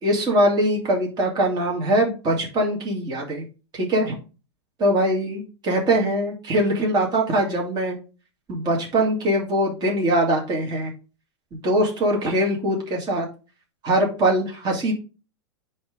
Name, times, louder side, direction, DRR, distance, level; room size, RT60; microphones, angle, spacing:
voice 1, 0.0-3.4 3.7-4.1 4.8-8.0 8.5-10.9 11.5-13.3 13.8-14.9, right 1 dB, 30° right, -1 dB, 2.2 m, -22 dB
9.9 x 3.4 x 3.6 m, 0.33 s
hypercardioid pair, 100°, 15 cm